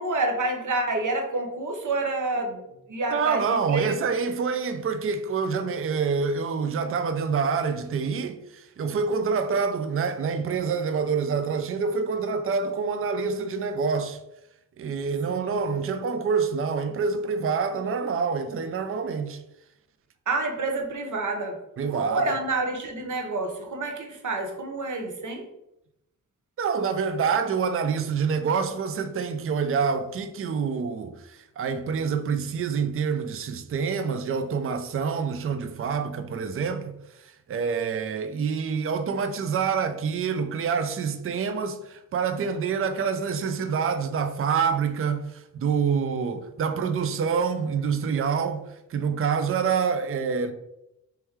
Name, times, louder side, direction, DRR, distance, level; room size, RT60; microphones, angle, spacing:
voice 1, 0.0-2.6 2.9-3.9 15.3-15.6 20.3-21.6 21.9-25.4, right 2 dB, 60° right, 0.8 m, -28 dB
voice 2, 3.1-14.2 14.8-19.4 21.8-22.2 26.6-36.9 37.2-48.6 48.9-50.5, right 5 dB, 40° right, 0.4 m, -27 dB
3.2 x 3.0 x 3.5 m
cardioid pair, 75°, 33 cm